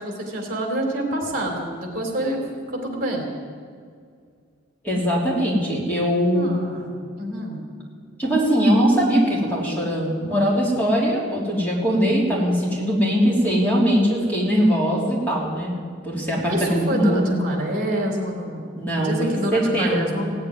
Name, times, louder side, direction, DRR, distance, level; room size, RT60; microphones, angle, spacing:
voice 1, 0.0-2.4 2.7-3.3 6.3-7.6 16.5-18.6 19.0-20.3, right 1 dB, 40° right, 1 dB, 3.2 m, -27 dB
voice 2, 4.8-6.5 8.2-15.7 16.0-17.3 18.8-20.1, equal, 10° left, -6 dB, 3.2 m, -21 dB
17.0 x 8.8 x 9.6 m, 2.2 s
head